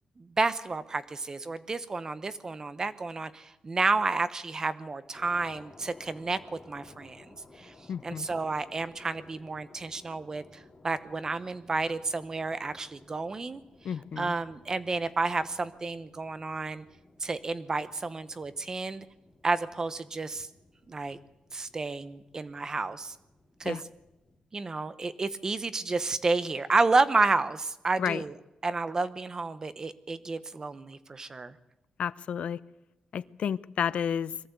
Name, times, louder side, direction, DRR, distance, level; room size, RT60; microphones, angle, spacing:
voice 1, 0.2-6.4 6.7-7.2 7.6-7.7 8.0-13.6 14.2-16.8 17.2-19.0 19.4-20.5 20.9-21.2 21.5-23.1 23.6-23.8 24.5-28.3 28.6-31.5, right 3 dB, 30° right, 13 dB, 1.0 m, -30 dB
sound 1, 5.1-24.4, left 2 dB, 25° left, 4.3 m, -57 dB
voice 2, 7.9-8.3 13.8-14.3 23.6-23.8 28.0-28.2 32.0-32.6 33.1-34.3, left 8 dB, 65° left, 17 dB, 0.6 m, -31 dB
22.5 x 14.5 x 8.2 m, 0.97 s
wide cardioid pair, 135°, 2 cm